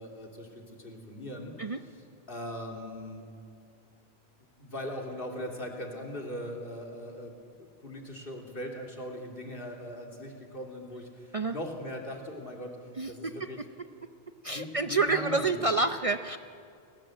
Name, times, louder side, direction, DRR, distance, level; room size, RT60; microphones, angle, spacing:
voice 1, 0.0-1.7 2.3-3.2 4.6-12.7 13.1-13.6 14.4-15.7, left 1 dB, 60° left, 2 dB, 3.0 m, -40 dB
voice 2, 13.0-13.5 14.4-16.4, right 3 dB, 40° right, 9 dB, 0.7 m, -28 dB
28.5 x 19.0 x 7.7 m, 2.4 s
omnidirectional pair, 1.1 m